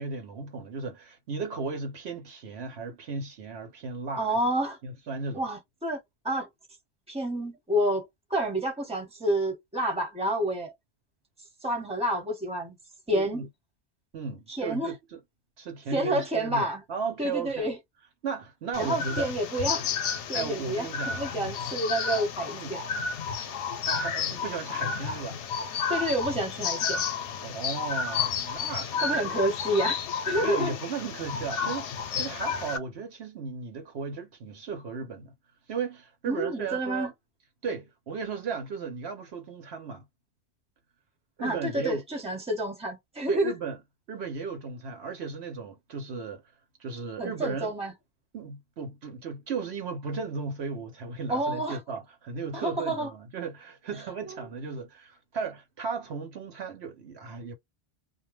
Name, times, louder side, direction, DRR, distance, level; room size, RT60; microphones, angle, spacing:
voice 1, 0.0-4.5 4.8-5.4 13.1-13.5 14.1-15.2 15.6-17.7 18.2-19.3 20.3-21.2 22.5-22.8 23.9-25.4 27.4-29.4 30.4-35.3 35.7-37.1 37.6-40.0 41.4-42.0 43.3-43.8 44.1-46.4 46.8-47.7 48.3-57.5, right 5 dB, 65° right, 1.0 m, -35 dB
voice 2, 4.2-4.8 5.3-6.0 6.2-6.5 7.1-10.7 11.6-12.8 13.1-13.4 14.5-14.9 15.9-16.8 17.2-17.8 18.8-19.9 20.3-22.8 25.9-27.0 29.0-30.0 30.2-30.8 36.3-37.1 41.4-43.5 47.2-47.9 51.3-51.8 52.5-53.1, right 1 dB, 5° right, 1.0 m, -29 dB
sound 1, 18.7-32.8, left 6 dB, 85° left, 0.9 m, -31 dB
2.3 x 2.1 x 3.0 m
omnidirectional pair, 1.2 m